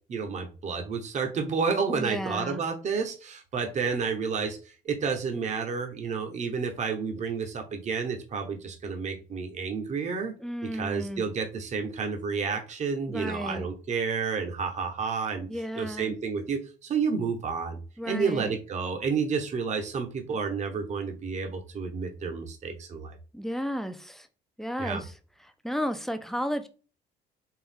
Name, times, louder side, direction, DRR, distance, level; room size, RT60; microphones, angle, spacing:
voice 1, 0.1-4.6 4.8-10.3 10.6-15.5 15.8-17.8 18.0-23.1 24.8-25.0, right 5 dB, 45° right, 5 dB, 1.0 m, -30 dB
voice 2, 1.9-2.6 10.4-11.2 13.1-13.7 15.5-16.2 18.0-18.5 23.3-24.3 24.6-25.1 25.6-26.7, equal, ahead, 8 dB, 0.6 m, -33 dB
4.6 x 3.1 x 3.6 m, 0.35 s
cardioid pair, 110°, 17 cm